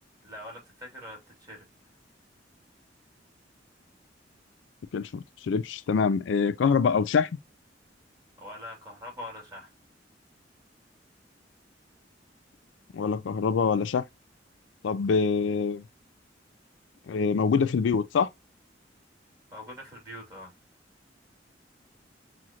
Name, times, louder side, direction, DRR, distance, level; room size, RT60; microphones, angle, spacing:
voice 1, 0.2-1.6 8.4-9.7 19.5-20.5, left 1 dB, 20° right, 2.5 m, -43 dB
voice 2, 4.9-7.3 12.9-14.0 14.8-15.8 17.1-18.3, left 5 dB, 85° left, 0.4 m, -25 dB
6.2 x 2.5 x 2.8 m
head